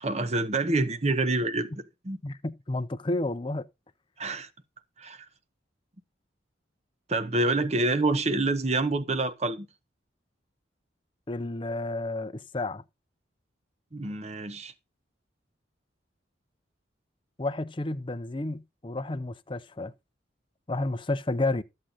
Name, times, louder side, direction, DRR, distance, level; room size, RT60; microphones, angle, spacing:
voice 1, 0.0-2.2 4.2-4.5 5.0-5.2 7.1-9.7 13.9-14.7, right 2 dB, 35° right, 0.9 m, -27 dB
voice 2, 2.2-3.7 11.3-12.8 17.4-19.9 20.7-21.6, left 2 dB, 25° left, 0.6 m, -31 dB
13.0 x 7.6 x 3.9 m
head